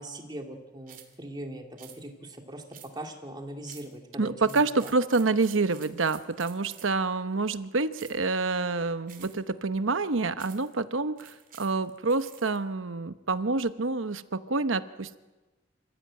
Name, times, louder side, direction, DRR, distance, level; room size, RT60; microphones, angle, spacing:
voice 1, 0.0-2.6 2.9-4.9, right 1 dB, 20° right, 3 dB, 2.5 m, -41 dB
sound 1, 0.9-1.2 1.8-2.0 2.7-3.1 3.7-4.0 4.4-7.0 7.9-8.3 9.1-9.5 10.4-10.7 11.2-12.6, right 10 dB, 45° right, 2.7 m, -50 dB
voice 2, 4.2-15.2, right 3 dB, 85° right, 12 dB, 1.0 m, -27 dB
27.0 x 15.0 x 8.8 m, 1.2 s
head